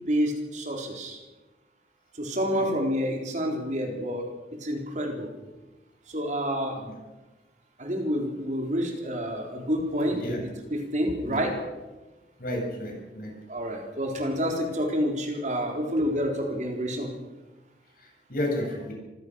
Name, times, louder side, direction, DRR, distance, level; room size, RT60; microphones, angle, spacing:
voice 1, 0.1-1.2 2.1-4.2 4.6-5.3 6.1-6.8 7.8-10.2 10.7-11.6 13.5-17.1, equal, 45° right, 1 dB, 4.1 m, -28 dB
voice 2, 10.0-10.4 11.2-11.4 12.4-13.3 18.0-18.9, left 1 dB, 55° left, 0 dB, 7.8 m, -32 dB
26.0 x 16.0 x 6.5 m, 1.1 s
head